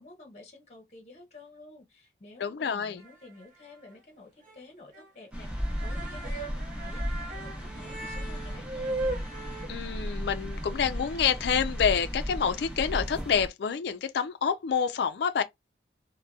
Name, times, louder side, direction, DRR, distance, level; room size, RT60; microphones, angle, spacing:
voice 1, 0.0-9.0, left 2 dB, 35° left, 0.8 m, -51 dB
voice 2, 2.4-3.0 9.7-15.4, left 7 dB, 65° left, 0.3 m, -28 dB
sound 1, 3.0-3.6 3.9-4.0 4.4-4.6 4.9-5.1 5.4-11.4, right 2 dB, 45° right, 0.7 m, -39 dB
sound 2, 5.3-13.5, equal, 5° right, 0.6 m, -35 dB
2.7 x 2.1 x 2.2 m
head